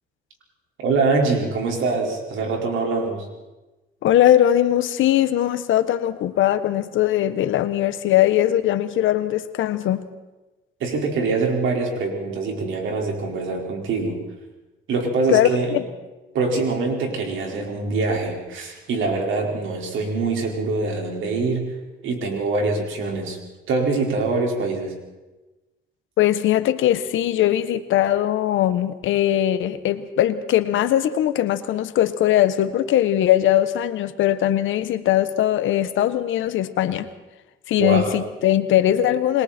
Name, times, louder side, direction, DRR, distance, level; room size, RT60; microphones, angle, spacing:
voice 1, 0.8-3.3 10.8-14.2 14.9-15.8 16.3-21.7 22.0-23.4 23.7-24.9 37.8-38.1, right 3 dB, 80° right, 0 dB, 5.2 m, -24 dB
voice 2, 4.0-10.0 15.3-15.9 26.2-37.1 37.7-39.4, left 12 dB, 80° left, 11 dB, 1.3 m, -20 dB
28.0 x 21.5 x 4.5 m, 1.1 s
cardioid pair, 90°, 20 cm